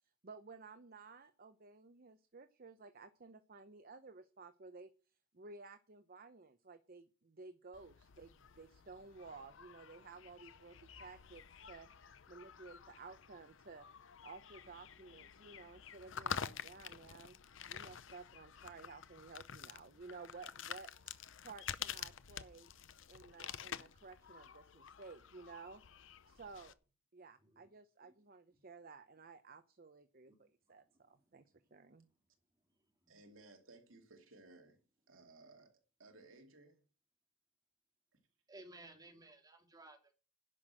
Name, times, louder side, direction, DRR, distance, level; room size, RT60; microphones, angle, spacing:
voice 1, 0.0-11.9 12.3-17.4 17.7-22.7 23.1-25.8 26.3-26.8 27.1-31.4 31.7-32.1, right 4 dB, 45° right, 0.8 m, -55 dB
sound 1, 7.7-26.7, left 8 dB, 65° left, 0.7 m, -49 dB
voice 2, 27.4-27.7 28.0-28.1 30.3-30.4 30.9-31.4 33.0-33.2 38.5-40.1, right 2 dB, 20° right, 2.8 m, -58 dB
voice 3, 33.1-34.8 35.1-36.8, right 2 dB, 80° right, 2.6 m, -60 dB
11.0 x 6.1 x 8.9 m
head